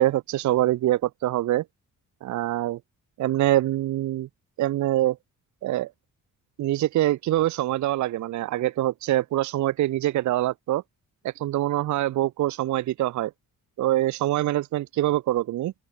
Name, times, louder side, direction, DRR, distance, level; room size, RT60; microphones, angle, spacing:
voice 1, 0.0-1.6 2.2-2.8 3.2-4.3 4.6-5.2 5.6-5.9 6.6-10.8 11.2-13.3 13.8-15.7, right 14 dB, 60° right, 0.5 m, -24 dB
open air
wide cardioid pair, 175°, 34 cm